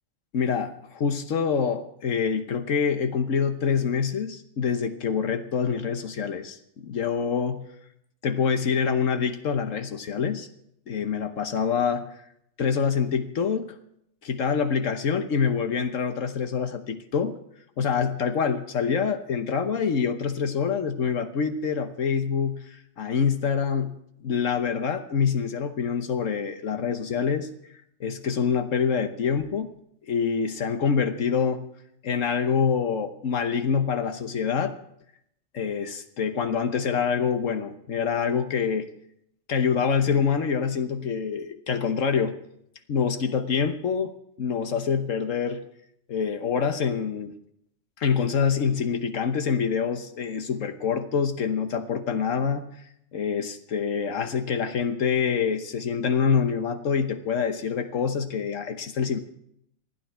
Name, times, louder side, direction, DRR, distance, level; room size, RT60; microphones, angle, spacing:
voice 1, 0.3-6.6 6.8-7.6 8.2-10.5 10.9-12.1 12.6-13.7 14.2-17.4 17.8-24.0 24.2-27.5 28.0-29.7 30.1-31.7 32.0-34.7 35.5-38.9 39.5-42.3 42.9-44.1 44.4-45.6 46.1-47.3 48.0-52.7 53.1-59.2, left 6 dB, 75° left, 8 dB, 1.4 m, -26 dB
28.0 x 9.4 x 4.5 m, 0.74 s
omnidirectional pair, 1.3 m